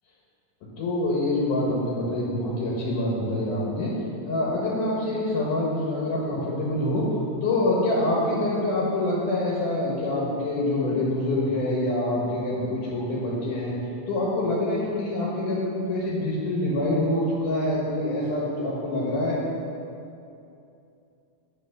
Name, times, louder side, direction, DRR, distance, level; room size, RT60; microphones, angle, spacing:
voice 1, 0.8-3.9 4.2-7.1 7.4-13.7 14.1-19.4, left 1 dB, 75° left, -6 dB, 2.8 m, -26 dB
8.0 x 5.7 x 5.8 m, 2.6 s
omnidirectional pair, 3.7 m